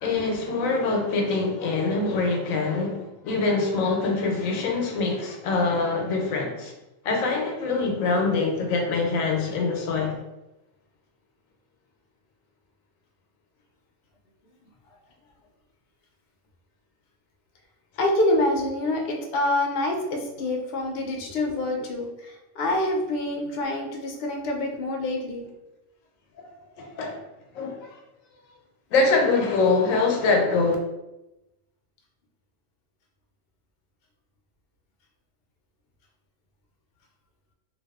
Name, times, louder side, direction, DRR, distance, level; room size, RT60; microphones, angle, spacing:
voice 1, 0.0-6.7 7.0-10.2 26.4-27.2 27.5-28.0 28.9-30.8, left 3 dB, 85° left, 1 dB, 1.0 m, -24 dB
voice 2, 18.0-25.5, left 1 dB, 60° left, 1 dB, 0.6 m, -26 dB
2.5 x 2.3 x 2.3 m, 0.95 s
omnidirectional pair, 1.3 m